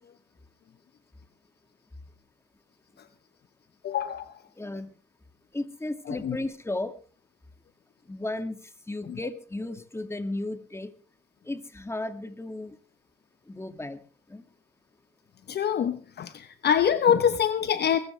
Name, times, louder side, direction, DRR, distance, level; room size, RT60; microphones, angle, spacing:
voice 1, 3.8-4.3 6.1-6.4 9.1-9.2 15.5-18.0, left 8 dB, 55° left, 1.0 m, -25 dB
voice 2, 4.6-4.9 5.5-6.9 8.1-8.6 8.9-10.9 11.5-12.8 13.5-14.0 14.3-14.4, left 2 dB, 15° left, 2.2 m, -34 dB
22.5 x 14.0 x 3.4 m
cardioid pair, 90°, 20 cm